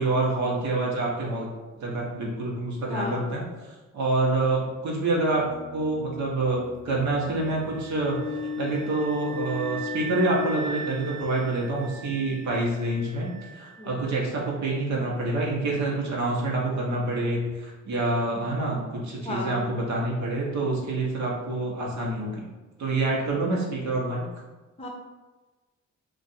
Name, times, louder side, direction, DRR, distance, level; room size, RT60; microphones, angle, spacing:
voice 1, 0.0-1.5 1.8-5.5 5.7-8.2 8.6-22.5 22.8-24.3, right 2 dB, 65° right, -3 dB, 1.0 m, -27 dB
voice 2, 2.9-3.3 13.8-13.9 19.2-19.6 24.8-24.9, left 2 dB, 20° left, -1 dB, 0.7 m, -33 dB
sound 1, 4.9-11.7, left 4 dB, 70° left, 0.5 m, -38 dB
sound 2, 7.0-13.8, right 6 dB, 25° right, 0.7 m, -41 dB
2.5 x 2.5 x 4.1 m, 1.2 s
cardioid pair, 90°, 30 cm